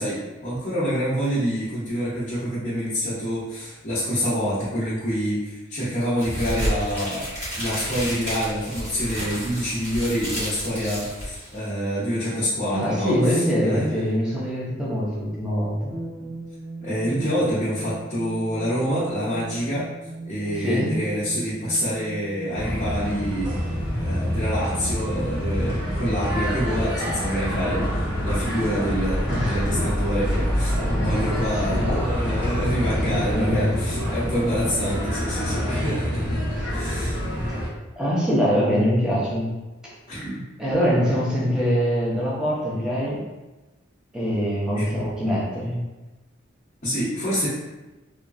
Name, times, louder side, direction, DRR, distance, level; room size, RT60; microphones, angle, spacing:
voice 1, 0.0-13.9 16.2-16.3 16.8-19.8 20.2-23.6 24.0-36.4 36.7-37.2 40.1-40.4 44.7-44.9 46.8-47.5, equal, 35° left, -11 dB, 0.7 m, -27 dB
sound 1, 6.2-11.7, equal, 35° right, 1.3 m, -31 dB
voice 2, 12.7-16.0 20.5-21.1 29.3-29.8 30.9-31.1 31.5-31.9 32.2-32.4 32.9-34.0 36.6-36.7 38.0-39.5 40.6-43.3 44.1-45.8, equal, 5° right, -6 dB, 0.6 m, -24 dB
sound 2, 15.9-28.7, right 2 dB, 80° right, 0.9 m, -38 dB
sound 3, 22.5-37.7, equal, 60° right, 1.2 m, -26 dB
2.9 x 2.3 x 2.5 m, 1.1 s
head